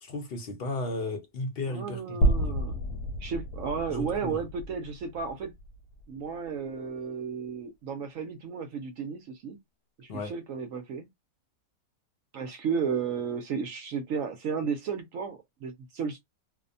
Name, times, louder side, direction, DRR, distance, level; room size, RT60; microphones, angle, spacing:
voice 1, 0.0-2.6 3.9-4.4 10.1-10.4, left 2 dB, 60° left, 0.6 m, -35 dB
voice 2, 1.7-2.8 3.2-5.5 6.1-9.6 10.0-11.1 12.3-16.2, right 6 dB, 70° right, 0.9 m, -33 dB
sound 1, 2.2-6.4, right 1 dB, 90° left, 1.1 m, -30 dB
2.7 x 2.1 x 2.5 m
omnidirectional pair, 1.6 m